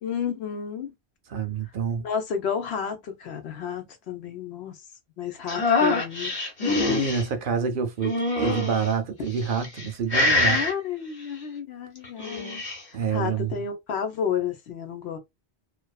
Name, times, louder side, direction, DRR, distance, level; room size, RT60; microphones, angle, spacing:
voice 1, 0.0-0.9 2.0-4.7 5.2-6.3 10.4-15.2, left 7 dB, 80° left, 1.0 m, -31 dB
voice 2, 1.3-2.0 6.8-10.6 12.9-13.6, right 6 dB, 60° right, 0.7 m, -27 dB
sound 1, 5.5-7.2 8.0-8.9 9.5-9.9 10.1-10.7 12.0-12.8, left 2 dB, 40° left, 1.0 m, -24 dB
2.5 x 2.3 x 2.3 m
omnidirectional pair, 1.1 m